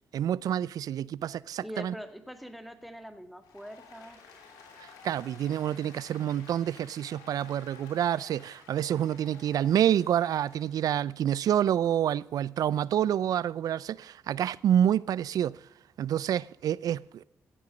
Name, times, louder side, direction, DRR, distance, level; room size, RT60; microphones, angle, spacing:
voice 1, 0.1-1.9 5.0-15.6 16.0-17.2, right 10 dB, 70° right, 0.4 m, -28 dB
voice 2, 1.6-4.2, equal, ahead, 1.8 m, -43 dB
Applause, 3.4-10.9, left 5 dB, 85° left, 2.8 m, -53 dB
15.5 x 8.0 x 5.2 m
supercardioid pair, 50°, 7 cm